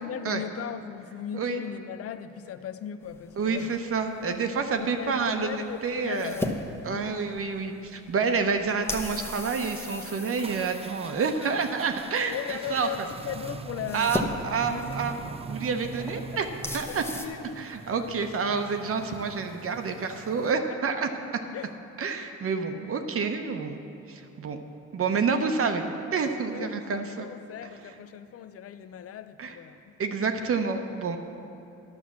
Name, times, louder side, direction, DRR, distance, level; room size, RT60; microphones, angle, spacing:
voice 1, 0.0-3.7 4.2-4.4 4.8-6.6 6.9-7.2 11.4-11.6 12.3-14.4 14.7-15.0 16.9-17.7 21.5-21.7 26.5-29.9, left 9 dB, 50° left, 0.5 m, -38 dB
sound 1, 3.0-17.3, left 1 dB, 10° left, 0.8 m, -39 dB
voice 2, 3.4-6.4 6.8-13.1 13.9-15.2 15.5-16.5 16.7-17.0 17.6-21.4 22.0-23.8 24.1-24.6 24.9-25.8 26.1-27.3 27.9-28.0 29.4-29.6 30.0-31.2, right 5 dB, 50° right, 0.8 m, -28 dB
sound 2, 10.3-20.5, right 5 dB, 20° right, 0.3 m, -42 dB
10.5 x 5.9 x 7.3 m
cardioid pair, 90°, 30 cm